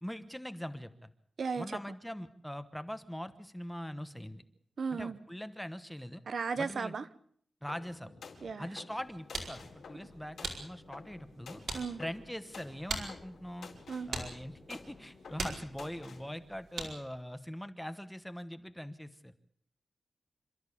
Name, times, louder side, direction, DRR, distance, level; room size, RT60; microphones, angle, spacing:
voice 1, 0.0-1.1 1.6-4.4 4.9-6.2 6.6-7.0 7.6-8.2 8.6-11.6 12.0-13.7 14.1-19.3, equal, 5° left, 1.1 m, -42 dB
voice 2, 1.4-1.8 4.8-5.2 6.3-7.0 8.4-8.7 11.7-12.0 13.9-14.1, right 5 dB, 55° right, 1.0 m, -35 dB
sound 1, 7.7-16.3, left 5 dB, 80° left, 4.4 m, -52 dB
sound 2, 8.9-17.2, right 3 dB, 85° right, 4.9 m, -43 dB
27.5 x 13.0 x 8.5 m
wide cardioid pair, 175°, 0 cm